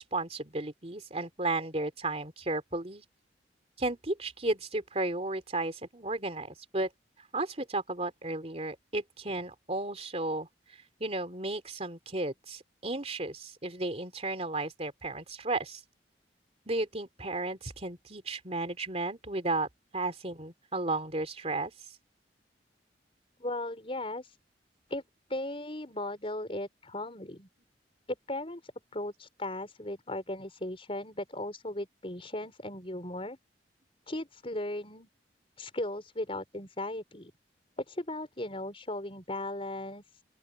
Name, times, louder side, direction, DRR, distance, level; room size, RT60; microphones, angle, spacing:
voice 1, 0.0-3.0 3.8-6.9 7.3-10.5 11.0-15.8 16.7-19.7 19.9-21.7, right 2 dB, 35° right, 3.2 m, -34 dB
voice 2, 23.4-24.4 24.9-25.0 25.3-27.5 28.3-33.4 34.1-35.1 35.6-37.3 37.8-40.2, left 1 dB, 30° left, 5.3 m, -37 dB
open air
head